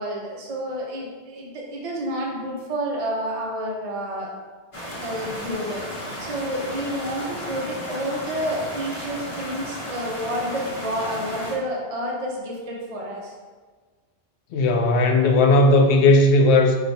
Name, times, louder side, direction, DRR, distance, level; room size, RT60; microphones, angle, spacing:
voice 1, 0.0-4.3 5.0-13.3, equal, 40° right, -3 dB, 0.6 m, -29 dB
sound 1, 4.7-11.6, equal, 35° left, 0.8 m, -34 dB
voice 2, 14.5-16.8, left 2 dB, 80° left, 4 dB, 0.8 m, -16 dB
4.9 x 2.2 x 4.0 m, 1.5 s
omnidirectional pair, 1.1 m